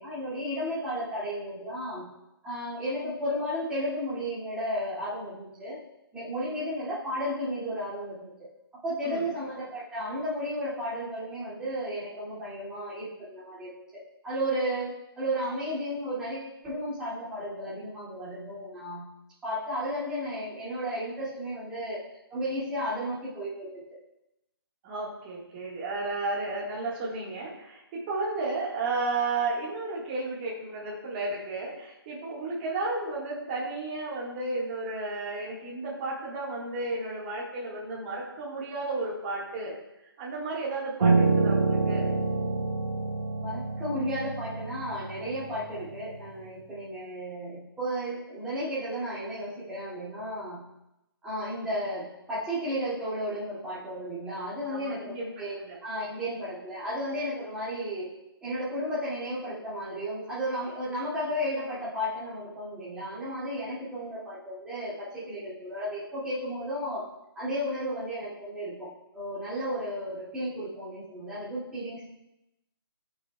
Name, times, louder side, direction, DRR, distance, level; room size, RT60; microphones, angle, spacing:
voice 1, 0.0-2.1 2.4-5.8 6.1-8.3 8.8-19.1 19.4-22.0 22.3-23.8 43.4-50.7 51.2-58.1 58.4-67.0 67.3-72.0, equal, 5° right, -11 dB, 2.3 m, -33 dB
voice 2, 24.8-39.8 40.2-42.1 54.7-55.8, right 3 dB, 25° right, -4 dB, 1.6 m, -33 dB
Piano, 41.0-46.3, right 3 dB, 65° right, 1.6 m, -27 dB
16.0 x 6.2 x 2.3 m, 0.90 s
hypercardioid pair, 155°, 13 cm